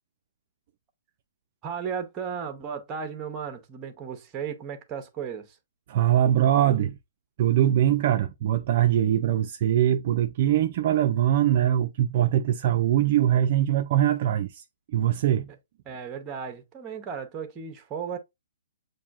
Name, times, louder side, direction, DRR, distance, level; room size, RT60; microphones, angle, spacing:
voice 1, 1.6-5.6 15.9-18.2, right 7 dB, 15° right, 0.7 m, -35 dB
voice 2, 5.9-7.0 7.4-14.6 14.9-15.5, right 11 dB, 40° right, 0.3 m, -22 dB
7.1 x 2.6 x 2.3 m
hypercardioid pair, 160°, 0 cm